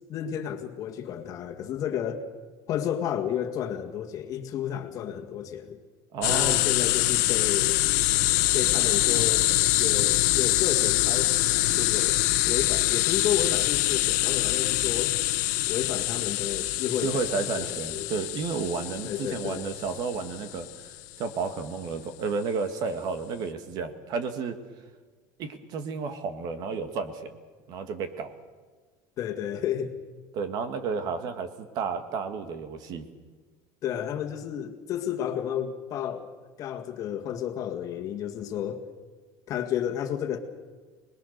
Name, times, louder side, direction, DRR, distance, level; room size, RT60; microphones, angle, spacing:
voice 1, 0.1-2.2 2.7-5.8 6.3-7.8 8.5-9.5 9.8-12.2 12.5-15.2 15.7-18.1 19.0-19.7 29.2-30.0 33.8-36.3 36.6-38.8 39.5-40.4, left 10 dB, 40° left, 5 dB, 1.9 m, -32 dB
voice 2, 6.1-6.6 17.0-20.9 21.2-24.6 25.4-27.4 27.7-28.3 30.3-33.1, right 5 dB, 45° right, 9 dB, 1.9 m, -32 dB
sound 1, 6.2-20.7, left 18 dB, 85° left, 1.2 m, -25 dB
25.5 x 20.5 x 6.8 m, 1.4 s
cardioid pair, 160°, 9 cm